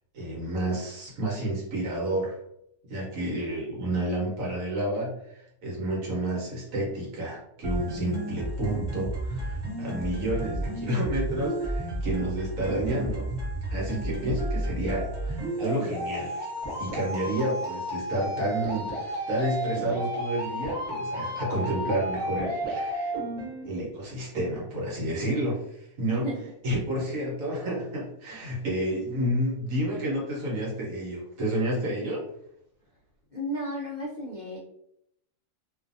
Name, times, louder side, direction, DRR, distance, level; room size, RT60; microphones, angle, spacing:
voice 1, 0.1-2.4 2.9-13.3 13.7-16.5 16.8-23.1 23.6-26.3 26.6-32.2, right 1 dB, 60° right, -3 dB, 1.2 m, -30 dB
sound 1, 7.6-23.6, right 1 dB, 25° right, 0.5 m, -32 dB
voice 2, 26.1-26.4 33.3-34.6, equal, 55° left, -7 dB, 0.5 m, -33 dB
2.6 x 2.4 x 2.5 m, 0.76 s
omnidirectional pair, 1.7 m